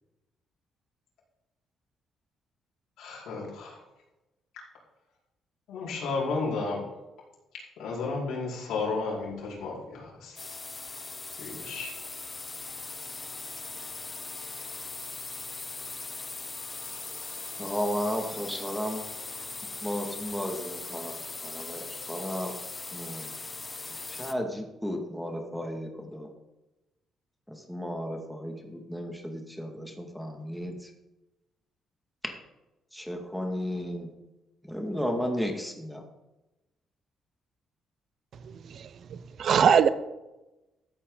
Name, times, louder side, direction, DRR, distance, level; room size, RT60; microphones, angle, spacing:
voice 1, 3.0-3.8 5.7-6.8 7.8-10.6 11.4-11.9, left 3 dB, 80° left, -5 dB, 4.7 m, -33 dB
sound 1, 10.4-24.3, left 3 dB, 25° left, 0.8 m, -40 dB
voice 2, 17.6-19.0 19.8-22.5 22.9-23.3 24.1-26.3 27.7-30.7 32.9-34.1 34.7-36.0, equal, ahead, 2 dB, 2.2 m, -34 dB
voice 3, 38.4-39.9, right 7 dB, 60° right, 13 dB, 0.7 m, -23 dB
14.0 x 8.3 x 4.0 m, 1.0 s
cardioid pair, 90°, 0 cm